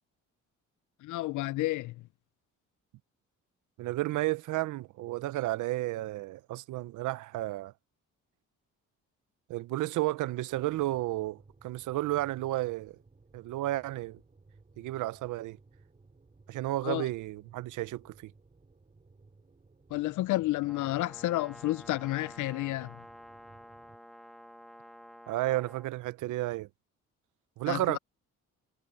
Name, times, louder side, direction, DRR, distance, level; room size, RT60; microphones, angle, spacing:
voice 1, 1.0-2.0 16.8-17.1 19.9-23.0 27.7-28.0, left 17 dB, 75° left, 0.5 m, -31 dB
voice 2, 3.8-7.7 9.5-13.0 13.3-14.2 14.8-15.6 16.5-18.3 25.3-26.7 27.6-28.0, right 17 dB, 80° right, 0.7 m, -32 dB
sound 1, 10.5-24.0, right 3 dB, 25° right, 4.9 m, -60 dB
Brass instrument, 20.6-25.9, equal, ahead, 2.7 m, -50 dB
cardioid pair, 90°, 30 cm